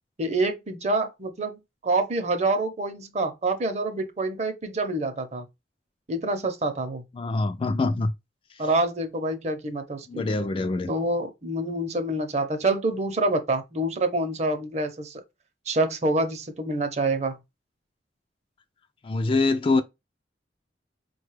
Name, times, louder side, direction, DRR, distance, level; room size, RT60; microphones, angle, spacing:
voice 1, 0.2-5.5 6.1-7.0 8.6-10.3 10.9-15.2 15.7-17.4, right 2 dB, 40° right, 0.7 m, -27 dB
voice 2, 7.1-8.1 10.1-10.9 19.0-19.8, left 3 dB, 30° left, 0.3 m, -24 dB
4.9 x 2.3 x 3.2 m
head